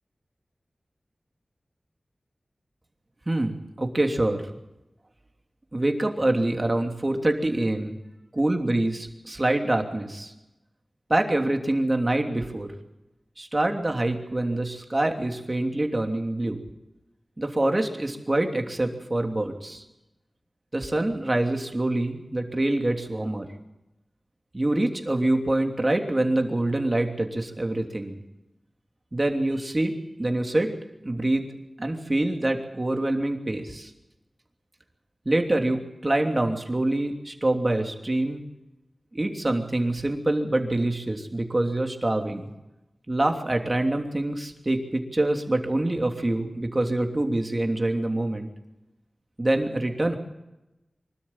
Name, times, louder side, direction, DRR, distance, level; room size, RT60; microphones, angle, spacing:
voice 1, 3.3-4.4 5.7-8.0 8.3-10.3 11.1-12.7 13.4-16.6 17.4-19.8 20.7-23.5 24.5-28.2 29.1-29.9 30.2-30.7 31.0-33.9 35.2-38.4 39.1-42.5 43.1-48.5 49.4-50.2, right 1 dB, 30° right, 4 dB, 3.0 m, -25 dB
24.5 x 13.0 x 8.9 m, 0.96 s
wide cardioid pair, 60°, 0 cm